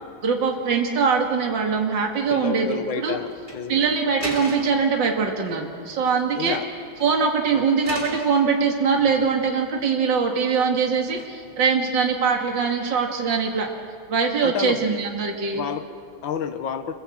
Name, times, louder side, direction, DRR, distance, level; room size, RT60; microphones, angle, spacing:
voice 1, 0.2-3.2 3.7-6.6 7.0-13.7 14.1-15.6, right 5 dB, 65° right, 2 dB, 2.8 m, -22 dB
voice 2, 2.3-3.9 6.3-6.7 7.5-7.7 14.4-14.8 15.5-16.9, left 7 dB, 75° left, 9 dB, 2.0 m, -30 dB
sound 1, 3.3-3.6 4.2-4.9 6.2-6.7 7.0-7.1 7.8-8.3 8.9-9.5 11.2-11.6, equal, 25° right, 3.2 m, -36 dB
26.5 x 23.0 x 7.8 m, 2.2 s
omnidirectional pair, 2.2 m